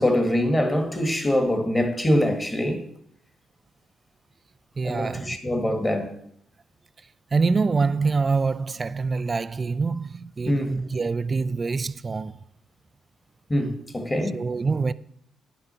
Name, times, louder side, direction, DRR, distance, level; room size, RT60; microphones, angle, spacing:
voice 1, 0.0-2.8 4.8-6.1 10.5-10.7 13.5-14.4, left 1 dB, 15° left, 1.6 m, -24 dB
voice 2, 4.8-5.8 7.3-12.3 14.3-14.9, right 4 dB, 30° right, 0.4 m, -25 dB
10.0 x 6.0 x 5.6 m
cardioid pair, 90°, 0 cm